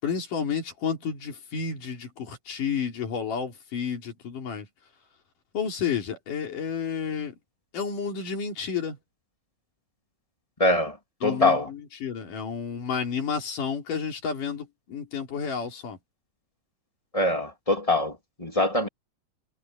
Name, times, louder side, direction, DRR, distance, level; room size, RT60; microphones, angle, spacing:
voice 1, 0.0-4.7 5.5-7.3 7.7-9.0 11.2-16.0, left 6 dB, 75° left, 5.2 m, -31 dB
voice 2, 10.6-11.0 11.2-11.7 17.1-18.9, left 2 dB, 15° left, 1.8 m, -23 dB
omnidirectional pair, 3.7 m